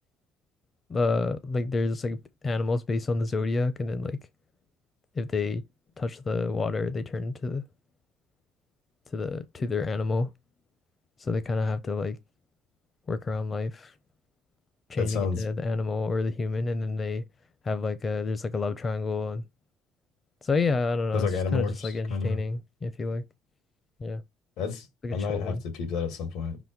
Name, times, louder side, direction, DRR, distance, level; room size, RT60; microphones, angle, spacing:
voice 1, 0.9-2.2 2.4-4.2 5.1-5.6 6.0-7.6 9.1-10.3 11.2-12.2 13.1-13.9 14.9-17.2 17.6-19.4 20.4-23.2 24.0-24.2 25.0-25.6, left 3 dB, 30° left, 0.6 m, -29 dB
voice 2, 15.0-15.4 21.1-22.4 24.6-26.6, left 5 dB, 80° left, 2.2 m, -30 dB
5.2 x 4.1 x 4.6 m
cardioid pair, 110°, 0 cm